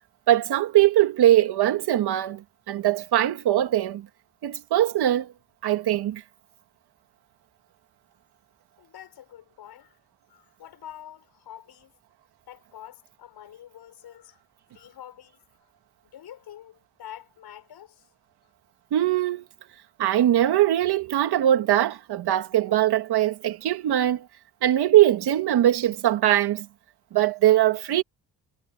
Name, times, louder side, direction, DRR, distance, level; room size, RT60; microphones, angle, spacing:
voice 1, 0.3-4.1 4.4-5.3 5.6-6.2 18.9-19.4 20.0-24.3 24.6-26.7 27.1-28.0, right 13 dB, 80° right, 2.0 m, -21 dB
voice 2, 8.8-10.0 10.3-11.9 12.5-14.4 14.7-15.4 16.0-18.1, left 11 dB, 75° left, 6.9 m, -46 dB
cardioid pair, 105°, 39 cm